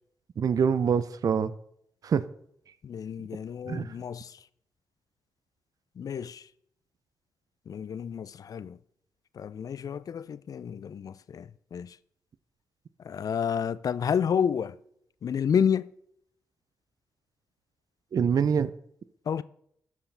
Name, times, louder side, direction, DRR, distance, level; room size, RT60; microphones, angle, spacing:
voice 1, 0.4-1.5 2.0-2.2 3.7-3.9 18.1-18.7, right 7 dB, 55° right, 0.5 m, -25 dB
voice 2, 2.8-4.4 6.0-6.5 7.7-8.8 9.3-12.0 13.0-14.8 15.2-15.9 19.3-19.4, left 7 dB, 55° left, 0.4 m, -30 dB
13.0 x 4.7 x 3.4 m
supercardioid pair, 45°, 7 cm